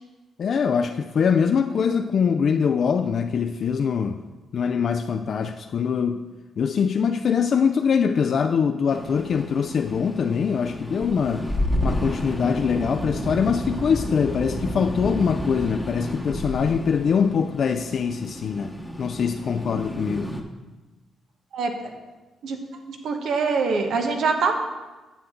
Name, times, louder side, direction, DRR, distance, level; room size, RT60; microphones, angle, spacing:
voice 1, 0.4-4.2 4.5-6.2 6.6-11.5 11.8-18.7 19.0-20.3, left 6 dB, 60° left, 6 dB, 0.4 m, -23 dB
sound 1, 8.9-20.4, equal, 5° left, 1.0 m, -31 dB
voice 2, 21.5-21.9 22.4-22.6 23.0-24.5, right 4 dB, 75° right, 4 dB, 1.1 m, -24 dB
9.3 x 8.0 x 3.8 m, 1.2 s
cardioid pair, 85°, 0 cm